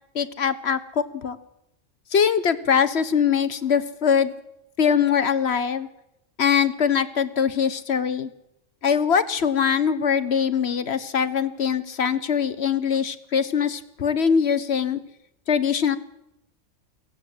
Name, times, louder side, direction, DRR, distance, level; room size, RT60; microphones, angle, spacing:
voice 1, 0.1-1.4 2.1-4.3 4.8-5.9 6.4-8.3 8.8-15.0 15.5-16.0, left 7 dB, 60° left, 14 dB, 1.4 m, -22 dB
23.0 x 18.0 x 7.9 m, 0.85 s
omnidirectional pair, 1.3 m